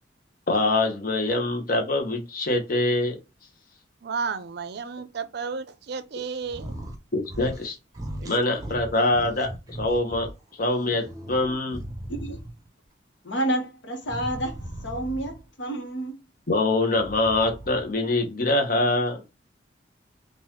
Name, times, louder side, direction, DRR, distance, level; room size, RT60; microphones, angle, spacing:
voice 1, 0.5-3.2 7.1-7.8 8.2-10.3 10.6-11.8 16.5-19.2, left 2 dB, 50° left, 1.0 m, -24 dB
voice 2, 4.0-6.7 8.2-8.3, right 5 dB, 60° right, 0.5 m, -32 dB
sound 1, 6.5-7.0 7.2-7.7 7.9-10.3 10.8-12.7 14.0-15.5 16.9-17.9, right 1 dB, 20° right, 0.7 m, -38 dB
voice 3, 13.2-16.1, right 1 dB, 75° left, 1.2 m, -30 dB
3.9 x 2.5 x 2.9 m
head